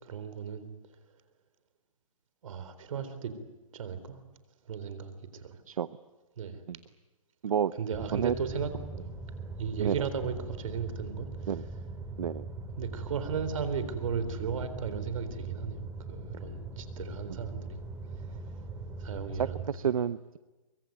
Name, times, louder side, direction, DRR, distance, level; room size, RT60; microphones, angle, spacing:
voice 1, 0.0-0.7 2.4-3.3 3.7-4.2 4.7-5.6 6.4-6.6 7.8-8.9 9.6-11.3 12.8-17.8 19.0-19.6, right 6 dB, 70° right, 11 dB, 3.9 m, -35 dB
sound 1, 7.9-19.7, right 3 dB, 15° right, 3.0 m, -41 dB
voice 2, 19.4-20.4, right 8 dB, 85° right, 15 dB, 0.8 m, -30 dB
24.0 x 22.5 x 9.3 m, 1.1 s
hypercardioid pair, 150°, 18 cm